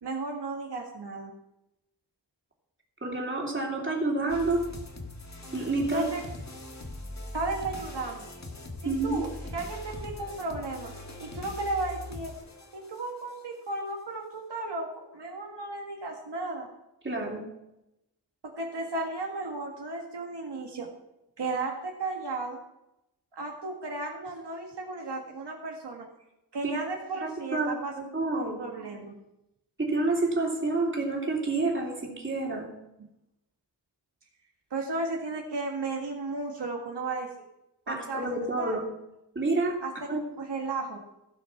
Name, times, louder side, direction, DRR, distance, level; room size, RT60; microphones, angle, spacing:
voice 1, 0.0-1.3 5.9-6.2 7.3-8.3 8.8-9.3 9.5-10.9 11.2-12.3 12.7-16.7 18.4-20.9 21.4-22.6 23.3-26.1 26.5-27.9 28.3-29.2 34.7-37.3 37.9-38.3 38.6-38.8 39.8-41.0, right 3 dB, 70° right, 0 dB, 1.9 m, -34 dB
voice 2, 3.0-4.6 5.5-6.0 8.8-9.2 17.0-17.4 26.6-26.8 27.5-28.7 29.8-32.7 37.9-38.8 39.3-39.8 40.1-40.2, right 2 dB, 25° right, -1 dB, 3.0 m, -28 dB
sound 1, 4.3-13.4, left 2 dB, 40° left, 1.8 m, -41 dB
16.5 x 6.2 x 5.8 m, 0.88 s
wide cardioid pair, 115°, 42 cm